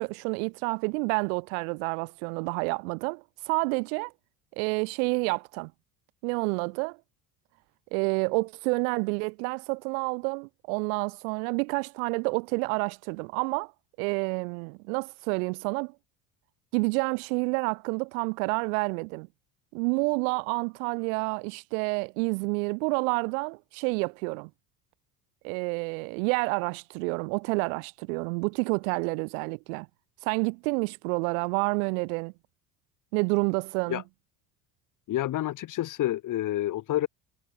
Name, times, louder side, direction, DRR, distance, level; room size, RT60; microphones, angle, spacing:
voice 1, 0.0-4.1 4.6-5.7 6.2-7.0 7.9-13.7 14.0-15.9 16.7-19.3 19.7-24.5 25.4-29.9 30.2-32.3 33.1-34.0, right 34 dB, 65° right, 0.6 m, -29 dB
voice 2, 35.1-37.1, left 14 dB, 40° left, 1.1 m, -28 dB
hypercardioid pair, 60°, 46 cm